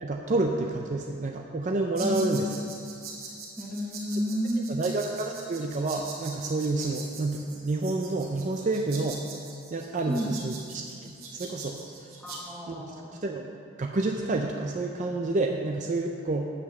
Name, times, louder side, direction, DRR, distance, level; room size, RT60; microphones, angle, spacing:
voice 1, 0.0-2.4 4.7-9.2 9.7-11.8 12.7-12.8 13.2-13.5 13.8-16.5, right 2 dB, 35° right, 2 dB, 0.5 m, -29 dB
voice 2, 2.0-2.4 3.6-4.7 10.1-10.5 12.2-13.2, equal, ahead, -2 dB, 1.0 m, -31 dB
sound 1, 2.0-12.4, right 4 dB, 70° right, 2.2 m, -43 dB
9.2 x 5.8 x 6.9 m, 2.3 s
head